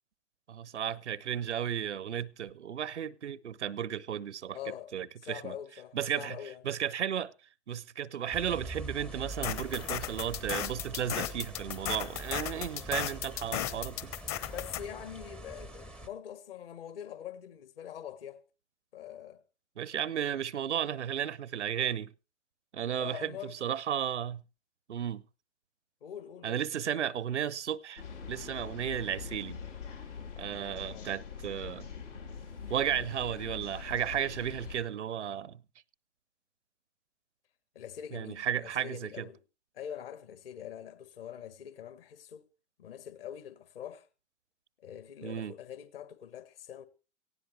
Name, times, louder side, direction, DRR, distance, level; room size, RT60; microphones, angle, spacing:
voice 1, 0.5-4.6 4.9-5.5 5.9-6.4 6.6-7.3 7.7-14.1 19.8-22.1 22.7-24.4 24.9-25.2 26.4-28.0 28.3-29.6 30.4-31.9 32.7-35.6 38.1-39.3 45.2-45.5, right 9 dB, 65° right, 0.7 m, -34 dB
voice 2, 4.5-4.9 5.2-6.6 14.4-18.4 18.9-19.4 22.9-23.5 26.0-26.6 26.8-27.0 30.9-31.1 37.7-39.4 39.7-42.4 42.8-44.1 44.8-46.9, left 9 dB, 50° left, 1.7 m, -44 dB
sound 1, 8.3-16.1, right 2 dB, 5° left, 0.6 m, -44 dB
sound 2, 9.3-14.8, left 12 dB, 30° left, 1.1 m, -35 dB
sound 3, 28.0-34.8, left 6 dB, 75° left, 3.8 m, -43 dB
18.0 x 16.0 x 3.3 m
figure-of-eight pair, 110°, 37 cm